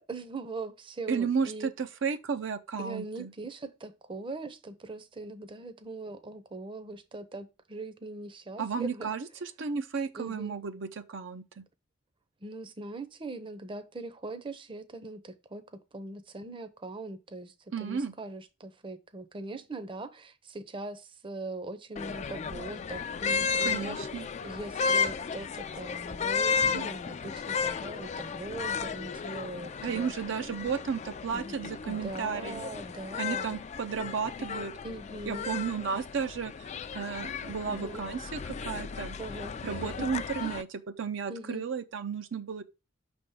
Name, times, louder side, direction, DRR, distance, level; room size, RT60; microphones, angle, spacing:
voice 1, 0.1-1.7 2.8-9.1 10.1-10.6 12.4-15.6 15.9-17.5 17.8-24.0 24.4-30.1 30.4-30.5 31.3-31.6 31.9-33.5 34.8-35.5 37.7-38.0 39.2-40.1 40.4-40.5 41.3-41.6, right 2 dB, 25° right, 0.6 m, -41 dB
voice 2, 1.1-3.3 8.6-11.6 17.7-18.1 23.6-24.3 29.8-32.6 33.2-34.7 35.3-39.2 39.6-42.6, right 6 dB, 65° right, 0.5 m, -33 dB
sound 1, 22.0-40.6, left 5 dB, 35° left, 0.3 m, -34 dB
6.0 x 3.5 x 5.4 m
head